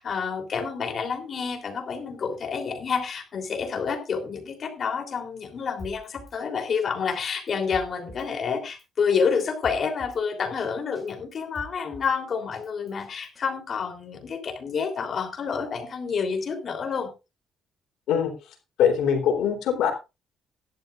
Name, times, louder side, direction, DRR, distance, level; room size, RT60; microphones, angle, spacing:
voice 1, 0.0-17.1, left 6 dB, 50° left, 5 dB, 3.5 m, -29 dB
Drum kit, 5.8-6.4 6.8-6.9 7.1-8.3 8.7-8.8 9.2-10.2 10.6-10.7 11.0-12.1 12.5-13.4, equal, 10° left, 6.8 m, -44 dB
voice 2, 18.8-19.9, left 8 dB, 85° left, 4 dB, 3.6 m, -22 dB
17.0 x 11.5 x 2.5 m, 0.27 s
cardioid pair, 90°, 0 cm